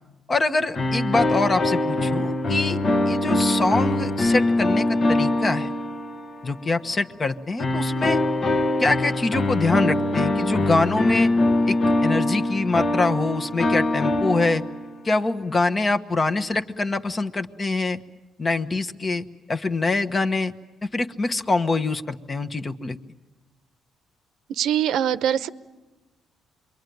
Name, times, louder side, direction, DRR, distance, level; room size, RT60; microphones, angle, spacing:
voice 1, 0.3-2.8 3.0-5.7 6.4-8.2 8.8-11.3 11.7-11.8 12.0-14.6 15.0-18.0 18.4-20.5 20.8-23.0, left 3 dB, 30° left, 8 dB, 1.2 m, -24 dB
sound 1, 0.7-6.6 7.6-15.0, left 2 dB, 50° left, 1.3 m, -23 dB
voice 2, 24.5-25.5, right 10 dB, 80° right, 13 dB, 0.8 m, -23 dB
27.5 x 22.5 x 9.4 m, 1.2 s
cardioid pair, 90°, 0 cm